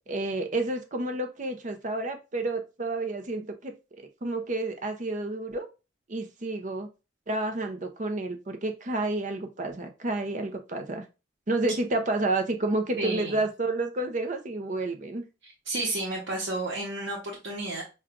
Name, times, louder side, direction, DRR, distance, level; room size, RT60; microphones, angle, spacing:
voice 1, 0.1-3.7 4.2-5.7 6.1-6.9 7.3-11.0 11.5-15.2, right 2 dB, 40° right, 0.6 m, -30 dB
voice 2, 13.0-13.4 15.7-17.8, right 2 dB, 75° right, 1.0 m, -31 dB
5.9 x 2.4 x 2.4 m
head